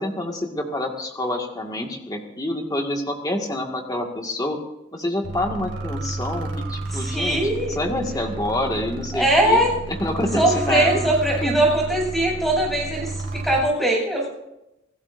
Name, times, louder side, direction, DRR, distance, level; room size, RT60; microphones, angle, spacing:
voice 1, 0.0-4.6 4.9-7.4 7.7-9.6 9.9-11.0 11.4-11.5, left 1 dB, 20° left, 2 dB, 1.9 m, -27 dB
sound 1, 5.2-13.6, right 2 dB, 75° right, 2.7 m, -31 dB
voice 2, 6.9-7.8 9.1-9.7 10.3-14.3, right 1 dB, ahead, -1 dB, 7.7 m, -21 dB
27.5 x 17.0 x 2.6 m, 0.88 s
head